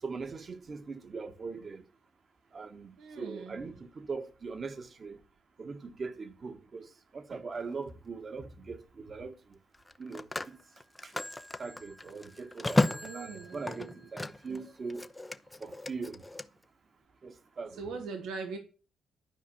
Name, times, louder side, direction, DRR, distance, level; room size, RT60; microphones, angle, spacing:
voice 1, 0.0-1.8 2.5-5.2 5.6-9.6 10.0-10.6 11.0-11.1 11.6-15.0 15.6-16.2 17.2-18.0, right 4 dB, 40° right, 1.6 m, -41 dB
voice 2, 3.0-3.7 13.0-14.1 14.5-14.6 17.7-18.6, right 4 dB, 80° right, 1.8 m, -41 dB
Telephone, 7.5-7.8 9.7-14.6 14.9-16.4, left 2 dB, 15° left, 0.7 m, -34 dB
12.0 x 4.9 x 7.1 m
cardioid pair, 90°, 0 cm